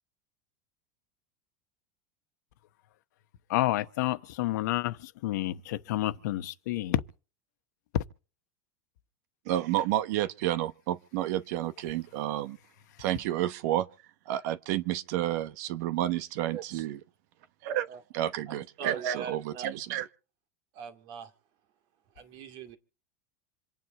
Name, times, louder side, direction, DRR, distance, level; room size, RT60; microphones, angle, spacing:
voice 1, 3.5-7.0 7.9-8.0, left 15 dB, 80° left, 1.1 m, -29 dB
voice 2, 9.5-12.6 13.0-13.9 14.3-17.0 17.6-17.8 18.1-20.1, right 13 dB, 70° right, 1.0 m, -30 dB
voice 3, 16.4-16.9 17.6-18.0 18.5-19.7 20.7-21.3 22.1-22.8, right 7 dB, 55° right, 2.3 m, -42 dB
27.5 x 9.4 x 4.2 m
supercardioid pair, 135°, 9 cm